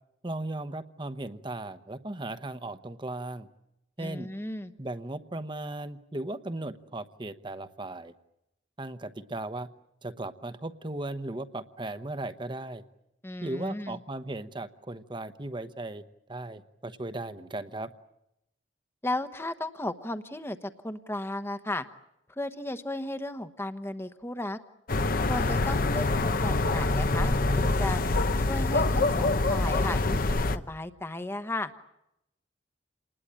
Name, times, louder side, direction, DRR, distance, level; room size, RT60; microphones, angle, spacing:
voice 1, 0.2-3.5 4.0-4.3 4.8-8.1 8.8-9.7 10.0-12.8 13.4-16.0 16.3-17.9, right 2 dB, 25° right, 11 dB, 1.0 m, -37 dB
voice 2, 4.0-4.7 13.2-14.0 19.0-21.8 22.3-24.6 25.3-28.0 28.5-30.2 30.5-31.7, left 1 dB, 15° left, 10 dB, 1.1 m, -35 dB
sound 1, 24.9-30.6, left 2 dB, 50° left, 0.9 m, -25 dB
28.0 x 20.0 x 8.8 m, 0.87 s
head